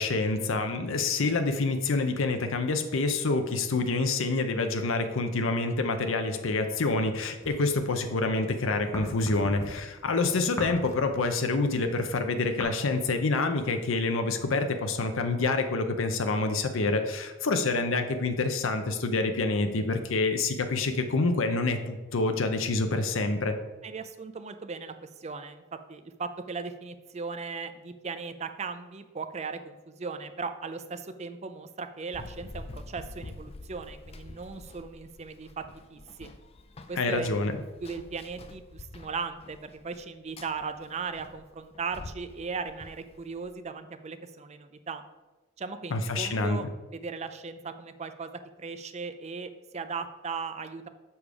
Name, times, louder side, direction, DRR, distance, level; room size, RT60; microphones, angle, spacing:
voice 1, 0.0-23.6 37.0-37.5 45.9-46.6, left 3 dB, 70° left, 7 dB, 0.6 m, -27 dB
sound 1, 7.4-8.3 8.6-12.6, equal, 15° left, 1.1 m, -39 dB
voice 2, 23.8-25.6 25.9-35.6 35.9-36.3 36.9-37.4 37.8-45.0 45.6-46.7 46.9-50.9, right 4 dB, 30° right, 9 dB, 0.4 m, -38 dB
Run, 32.1-43.5, left 2 dB, 30° left, 0.4 m, -47 dB
7.1 x 5.1 x 4.8 m, 1.2 s
head